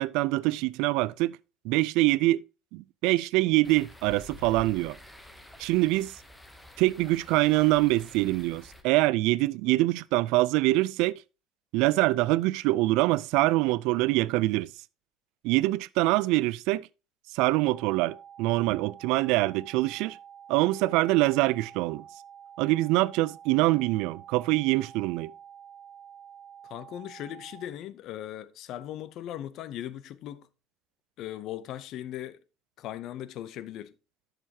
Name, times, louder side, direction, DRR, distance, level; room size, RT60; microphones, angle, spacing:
voice 1, 0.0-1.4 1.6-2.4 2.7-5.0 5.6-6.1 6.8-11.2 11.7-14.7 15.4-16.9 17.3-20.2 20.5-22.0 22.6-25.3, right 19 dB, 70° right, 0.4 m, -24 dB
sound 1, 3.6-8.8, left 2 dB, 5° left, 0.8 m, -49 dB
sound 2, 17.6-27.7, right 8 dB, 30° right, 1.3 m, -49 dB
voice 2, 26.6-30.5 31.2-32.4 32.8-33.9, left 12 dB, 45° left, 0.6 m, -38 dB
11.0 x 6.6 x 2.8 m
cardioid pair, 165°, 0 cm